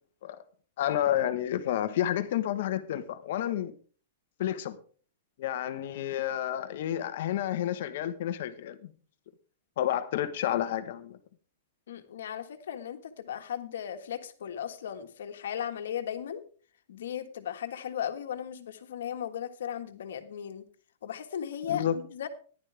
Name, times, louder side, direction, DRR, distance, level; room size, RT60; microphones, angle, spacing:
voice 1, 0.8-3.7 4.4-4.8 5.4-8.9 9.8-11.2 21.7-22.0, left 11 dB, 55° left, 12 dB, 1.2 m, -30 dB
voice 2, 11.9-16.4 16.9-20.6 21.0-22.3, left 9 dB, 80° left, 8 dB, 1.6 m, -36 dB
14.0 x 11.0 x 3.4 m, 0.41 s
supercardioid pair, 165°, 0 cm